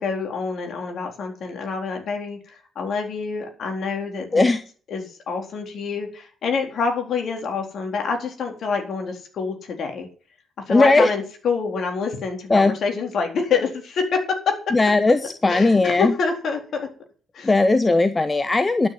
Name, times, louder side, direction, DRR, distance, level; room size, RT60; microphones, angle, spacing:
voice 1, 0.0-4.5 4.9-10.1 10.7-14.2 14.5-14.6 15.5-16.9 17.3-17.5, left 5 dB, 60° left, 3 dB, 3.9 m, -27 dB
voice 2, 10.7-11.1 12.5-12.8 14.7-16.2 17.4-18.9, left 3 dB, 25° left, 11 dB, 1.0 m, -18 dB
12.0 x 6.9 x 9.8 m, 0.42 s
hypercardioid pair, 45°, 0 cm